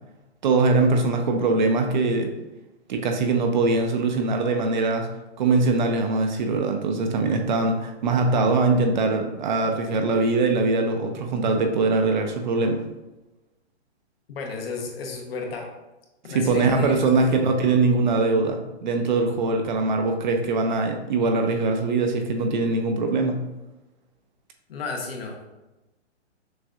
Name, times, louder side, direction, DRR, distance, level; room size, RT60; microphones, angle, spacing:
voice 1, 0.4-2.3 2.9-5.1 5.4-12.8 16.3-23.5, right 3 dB, 45° right, 4 dB, 0.5 m, -22 dB
voice 2, 14.3-15.7 16.2-17.3 24.7-25.4, left 4 dB, 55° left, 2 dB, 1.0 m, -33 dB
6.2 x 2.5 x 2.4 m, 1.0 s
hypercardioid pair, 150°, 34 cm